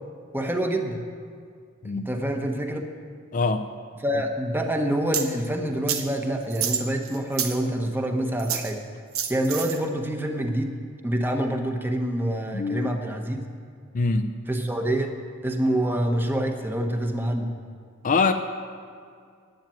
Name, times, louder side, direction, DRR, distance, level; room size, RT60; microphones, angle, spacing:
voice 1, 0.3-1.0 1.9-2.8 4.0-8.8 9.3-10.7 11.0-13.5 14.5-15.1 15.4-17.5, right 1 dB, 10° right, 3 dB, 1.0 m, -26 dB
voice 2, 3.3-3.7 12.5-12.9 13.9-14.3 18.0-18.3, left 4 dB, 40° left, 7 dB, 0.5 m, -23 dB
sound 1, 5.1-5.3 5.9-6.0 6.5-7.6 8.4-8.7 9.1-9.8, right 9 dB, 75° right, 1.1 m, -28 dB
10.5 x 9.0 x 9.1 m, 2.2 s
head